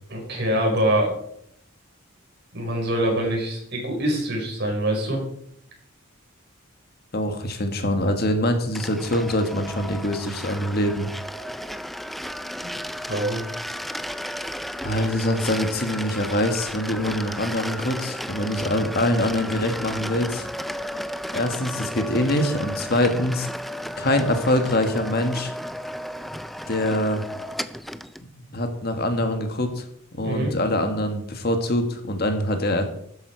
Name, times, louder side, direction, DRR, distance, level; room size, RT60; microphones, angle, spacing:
voice 1, 0.1-1.2 2.5-5.2 12.7-12.8 13.1-13.4 30.2-30.5, right 1 dB, 50° right, 0 dB, 5.0 m, -24 dB
voice 2, 7.1-11.1 14.8-20.5 21.3-23.5 24.0-25.5 26.7-27.2 28.4-29.9 30.1-32.8, left 1 dB, 50° left, 6 dB, 1.6 m, -24 dB
sound 1, 8.7-28.2, equal, ahead, 0.4 m, -34 dB
13.0 x 9.4 x 4.6 m, 0.70 s
head